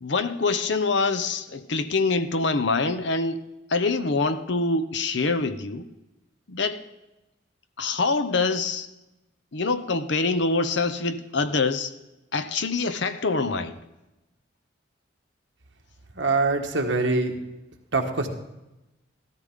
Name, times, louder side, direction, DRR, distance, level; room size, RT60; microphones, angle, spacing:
voice 1, 0.0-3.4 3.7-5.9 6.5-6.8 7.8-8.9 9.5-11.9 12.3-13.8, left 3 dB, 65° left, 0.8 m, -25 dB
voice 2, 16.1-17.3 17.9-18.3, right 3 dB, 65° right, 1.5 m, -23 dB
15.5 x 13.5 x 3.7 m
head